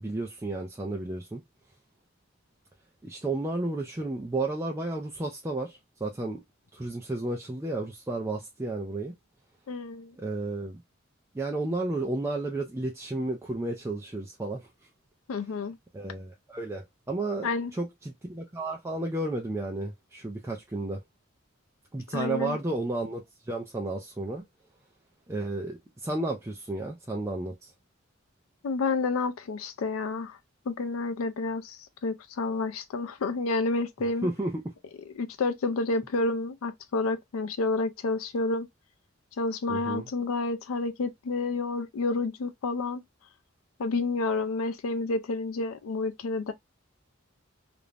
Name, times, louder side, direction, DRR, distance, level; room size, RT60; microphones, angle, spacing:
voice 1, 0.0-1.4 3.0-6.4 6.7-9.1 10.2-10.8 11.3-14.7 15.9-21.0 21.9-24.4 25.3-27.7 34.2-34.5 39.7-40.1, right 2 dB, 15° right, 0.4 m, -32 dB
voice 2, 9.7-10.2 15.3-15.8 17.4-17.7 22.1-22.6 28.6-30.4 30.7-34.3 35.2-38.7 39.4-43.0 43.8-46.5, left 3 dB, 85° left, 0.4 m, -29 dB
2.5 x 2.1 x 3.1 m
head